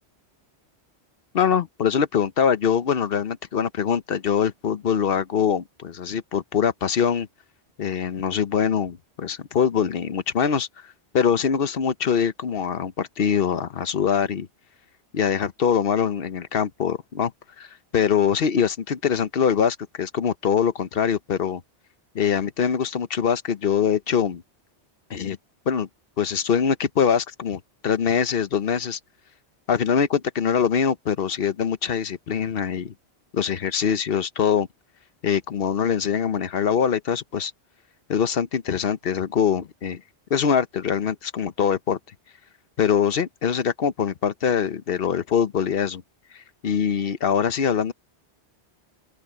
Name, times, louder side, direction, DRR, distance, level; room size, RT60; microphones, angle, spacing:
voice 1, 1.3-7.3 7.8-10.7 11.1-14.5 15.1-17.3 17.6-17.7 17.9-21.6 22.1-24.4 25.1-25.4 25.7-25.9 26.2-29.0 29.7-32.9 33.3-34.7 35.2-37.5 38.1-40.0 40.3-42.0 42.8-46.0 46.3-47.9, left 7 dB, 60° left, 1.0 m, -23 dB
open air
omnidirectional pair, 1.2 m